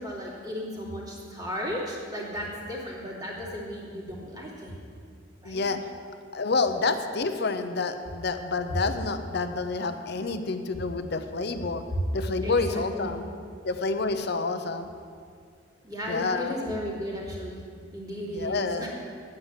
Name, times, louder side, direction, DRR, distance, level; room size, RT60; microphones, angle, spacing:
voice 1, 0.0-4.8 5.4-5.6 12.4-13.1 15.8-17.6 17.9-18.9, equal, 20° right, -4 dB, 2.9 m, -35 dB
voice 2, 5.4-5.9 6.3-11.8 12.1-13.2 13.6-14.9 16.1-16.6 18.3-18.9, left 3 dB, 55° left, 8 dB, 0.7 m, -28 dB
10.0 x 8.9 x 8.4 m, 2.2 s
head